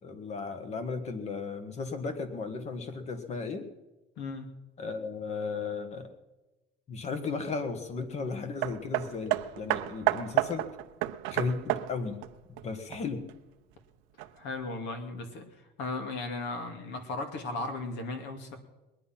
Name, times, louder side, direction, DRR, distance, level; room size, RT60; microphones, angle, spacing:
voice 1, 0.0-3.7 4.8-6.1 6.9-10.7 11.3-12.2 12.5-13.2, left 4 dB, 35° left, 9 dB, 1.7 m, -35 dB
voice 2, 4.2-4.5 14.2-15.5 15.8-18.6, left 3 dB, 65° left, 6 dB, 2.4 m, -36 dB
Hammer, 8.6-13.3 14.2-14.3, right 16 dB, 90° right, 0.7 m, -31 dB
21.0 x 10.0 x 5.9 m, 1.0 s
cardioid pair, 150°, 19 cm